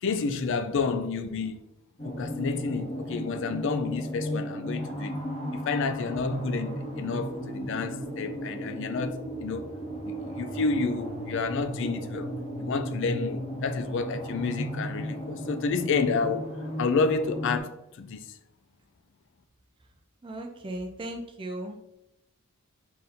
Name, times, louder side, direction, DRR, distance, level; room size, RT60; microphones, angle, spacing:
voice 1, 0.0-1.6 2.0-5.2 5.5-9.7 10.0-12.3 12.6-18.3, left 4 dB, 55° left, 0.4 m, -30 dB
sound 1, 2.0-17.6, equal, 30° left, 0.8 m, -35 dB
voice 2, 20.2-21.9, right 1 dB, 25° right, 0.4 m, -37 dB
3.9 x 2.6 x 4.1 m
head